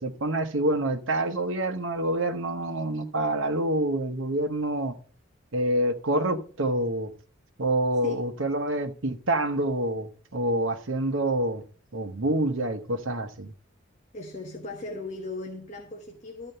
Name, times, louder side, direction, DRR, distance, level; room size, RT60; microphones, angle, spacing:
voice 1, 0.0-5.0 5.5-7.1 7.6-11.6 11.9-13.5, right 1 dB, 70° right, 1.0 m, -27 dB
voice 2, 14.1-16.5, left 2 dB, 35° left, 1.1 m, -37 dB
13.0 x 4.4 x 6.8 m
head